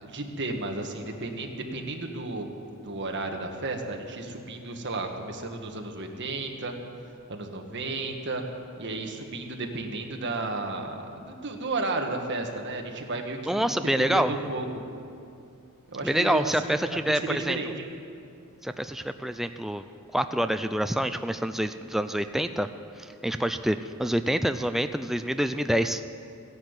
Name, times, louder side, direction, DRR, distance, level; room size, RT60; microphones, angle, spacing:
voice 1, 0.0-2.5 2.8-6.7 7.3-8.4 8.8-13.8 14.1-14.8 15.9-17.9, right 2 dB, 50° right, 3 dB, 1.6 m, -33 dB
voice 2, 13.5-14.3 16.0-17.6 18.6-19.8 20.1-22.7 23.0-26.0, equal, ahead, 9 dB, 0.3 m, -27 dB
16.0 x 10.5 x 8.1 m, 2.6 s
head